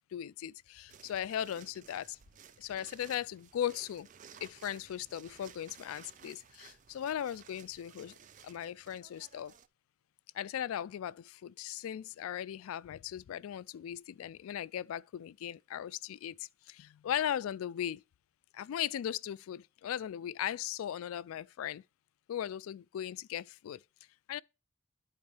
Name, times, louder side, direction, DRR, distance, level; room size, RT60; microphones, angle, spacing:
voice 1, 0.1-2.2 2.6-4.1 4.4-8.1 8.4-9.5 10.3-18.0 18.5-21.8 22.3-23.8 24.3-24.4, left 10 dB, 85° left, 0.3 m, -38 dB
sound 1, 0.9-9.7, right 7 dB, 35° right, 0.4 m, -57 dB
11.5 x 4.4 x 3.2 m
head